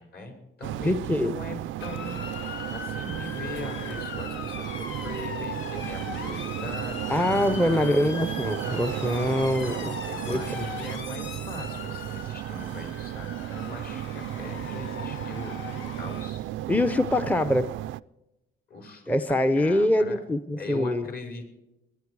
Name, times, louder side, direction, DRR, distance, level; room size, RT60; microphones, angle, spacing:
voice 1, 0.0-7.0 7.3-8.0 9.3-16.7 18.7-19.2 19.6-20.2 20.6-21.4, left 3 dB, 50° left, 4 dB, 5.1 m, -41 dB
sound 1, 0.6-18.0, right 14 dB, 80° right, 0.4 m, -34 dB
voice 2, 0.8-1.3 7.1-9.9 10.3-10.7 16.7-17.7 19.1-21.0, left 1 dB, 5° left, 11 dB, 0.7 m, -24 dB
Motor vehicle (road) / Siren, 1.8-16.3, left 6 dB, 70° left, 1.3 m, -39 dB
21.0 x 10.0 x 4.7 m, 0.94 s
cardioid pair, 90°, 20 cm